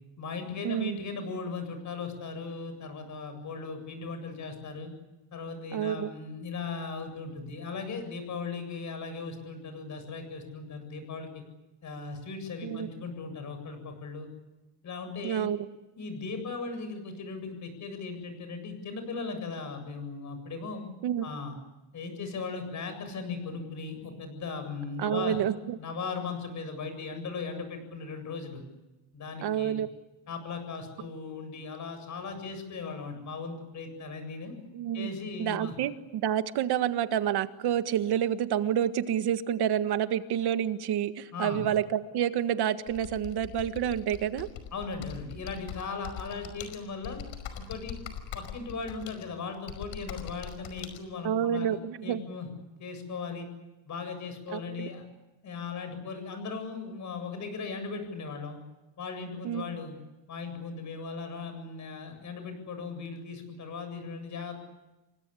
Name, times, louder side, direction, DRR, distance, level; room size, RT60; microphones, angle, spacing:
voice 1, 0.2-4.9 5.3-11.4 11.8-14.3 14.8-15.5 16.0-20.8 21.2-21.6 21.9-25.4 25.8-28.6 29.1-29.8 30.3-34.5 34.9-35.7 41.3-41.7 44.7-47.2 47.6-48.0 48.3-51.8 52.0-52.5 52.8-53.5 53.8-55.0 55.4-58.6 59.0-60.0 60.3-64.6, left 4 dB, 35° left, 8 dB, 7.9 m, -38 dB
voice 2, 5.7-6.1 12.6-12.9 15.2-15.7 21.0-21.3 25.0-25.8 29.4-29.9 34.7-35.1 35.4-44.5 51.2-52.2 54.5-54.9 59.4-59.7, right 10 dB, 50° right, 10 dB, 1.7 m, -28 dB
Computer keyboard, 42.9-51.0, left 8 dB, 60° left, 5.4 m, -42 dB
28.5 x 24.0 x 8.5 m, 1.0 s
cardioid pair, 150°, 49 cm